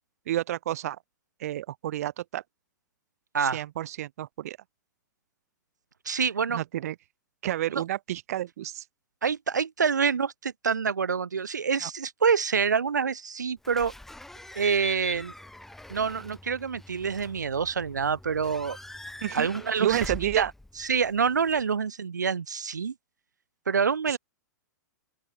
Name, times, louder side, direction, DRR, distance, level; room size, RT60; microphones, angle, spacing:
voice 1, 0.3-1.0 1.4-2.4 3.4-4.6 6.5-7.0 7.4-8.8 11.8-11.9 19.2-19.5 19.8-20.5 24.1-24.2, right 13 dB, 55° right, 1.9 m, -30 dB
voice 2, 6.0-6.6 7.7-7.8 9.2-13.9 14.5-15.3 15.9-18.8 19.3-20.5 20.8-22.9 23.7-24.2, right 6 dB, 75° right, 0.7 m, -27 dB
Slam / Squeak / Alarm, 13.6-21.6, left 1 dB, 5° left, 1.3 m, -43 dB
open air
figure-of-eight pair, 100°, 10 cm